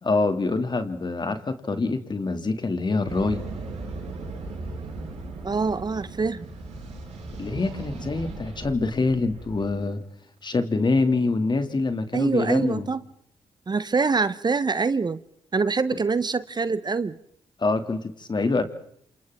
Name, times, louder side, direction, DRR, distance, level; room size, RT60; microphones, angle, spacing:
voice 1, 0.0-3.4 7.4-10.0 10.4-12.9 17.6-18.6, left 3 dB, 40° left, 8 dB, 2.4 m, -25 dB
sound 1, 3.1-9.8, right 3 dB, 75° right, 6.4 m, -37 dB
voice 2, 5.4-6.5 12.1-13.0 13.7-15.2 15.5-17.1, right 4 dB, 35° right, 16 dB, 0.9 m, -24 dB
28.5 x 27.5 x 3.7 m, 0.66 s
supercardioid pair, 50°, 12 cm